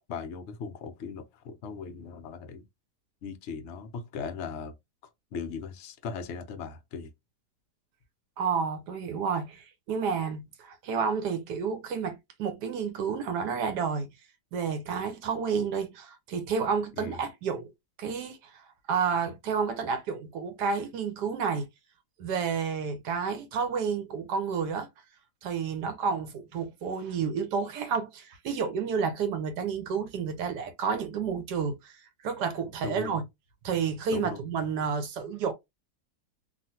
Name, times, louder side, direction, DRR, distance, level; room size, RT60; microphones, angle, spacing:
voice 1, 0.1-2.6 3.2-4.7 5.3-7.1 17.0-17.2 32.8-33.2 34.1-34.4, left 5 dB, 70° left, 0.6 m, -38 dB
voice 2, 8.4-14.1 14.5-17.7 18.0-18.6 18.9-21.7 22.2-24.9 25.4-32.0 32.2-33.2 33.6-35.5, right 6 dB, 75° right, 1.3 m, -30 dB
3.1 x 2.4 x 2.7 m
omnidirectional pair, 1.8 m